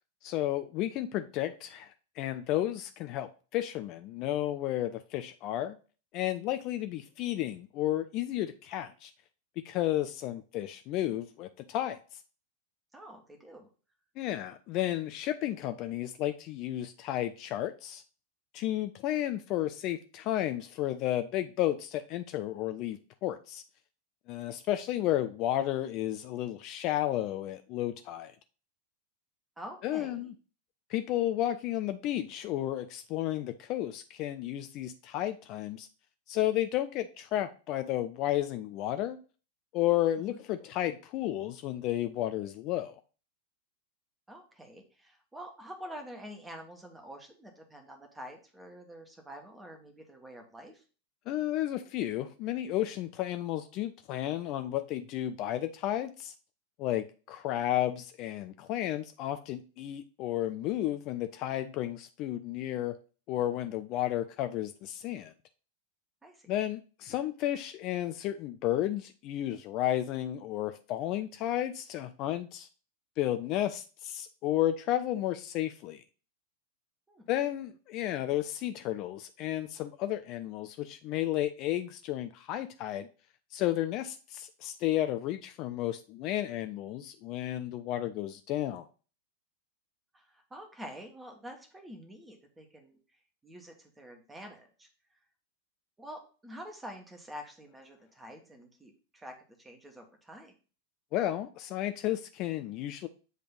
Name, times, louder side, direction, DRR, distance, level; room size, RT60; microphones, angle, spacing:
voice 1, 0.2-5.8 6.1-9.1 9.6-12.0 14.2-18.0 18.5-23.6 24.3-28.3 29.8-30.3 30.9-35.9 36.3-39.2 39.7-42.9 51.3-56.3 56.8-63.0 63.3-65.3 66.5-72.7 73.2-76.0 77.3-83.1 83.5-88.9 101.1-103.1, left 13 dB, 40° left, 0.4 m, -32 dB
voice 2, 12.9-13.7 29.6-30.3 40.2-40.4 44.3-50.8 66.2-66.5 77.1-77.3 90.1-93.0 93.4-94.9 96.0-100.5, equal, 10° right, 1.4 m, -47 dB
7.9 x 3.3 x 3.8 m
figure-of-eight pair, 90°, 0 cm